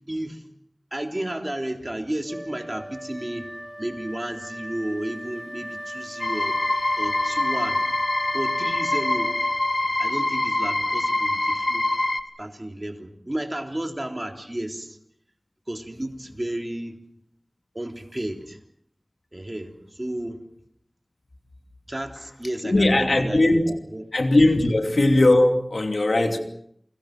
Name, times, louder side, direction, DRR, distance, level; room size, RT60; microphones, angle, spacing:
voice 1, 0.1-0.4 0.9-3.5 3.8-6.6 7.0-7.8 8.3-9.4 10.0-11.9 12.4-15.0 15.7-17.0 17.7-18.6 19.3-20.4 21.9-24.1, right 1 dB, 30° right, 3.5 m, -32 dB
Wind instrument woodwind instrument, 2.3-9.8, equal, 5° left, 5.9 m, -37 dB
sound 1, 6.2-12.2, left 2 dB, 60° left, 1.7 m, -24 dB
voice 2, 22.6-23.6 24.1-26.4, left 2 dB, 85° left, 2.8 m, -19 dB
29.0 x 22.5 x 6.1 m
wide cardioid pair, 50°, 0 cm